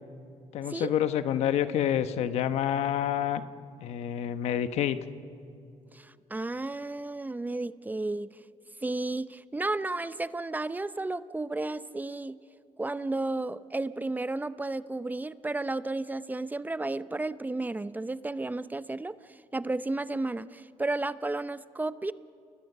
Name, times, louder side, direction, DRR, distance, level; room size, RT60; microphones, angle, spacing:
voice 1, 0.5-3.4 3.8-5.0, left 10 dB, 80° left, 11 dB, 1.0 m, -28 dB
voice 2, 5.9-8.3 8.8-12.4 12.8-22.1, right 2 dB, 15° right, 15 dB, 0.6 m, -33 dB
29.5 x 20.5 x 6.7 m, 2.5 s
cardioid pair, 85°, 11 cm